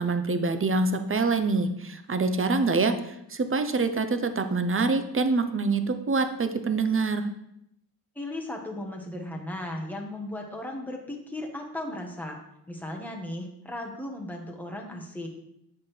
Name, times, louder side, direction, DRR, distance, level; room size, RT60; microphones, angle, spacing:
voice 1, 0.0-7.3, right 3 dB, 30° right, 8 dB, 0.6 m, -25 dB
voice 2, 8.1-12.4 12.7-15.3, left 1 dB, 5° left, 0 dB, 1.2 m, -36 dB
8.1 x 4.7 x 3.2 m, 0.80 s
wide cardioid pair, 75°, 41 cm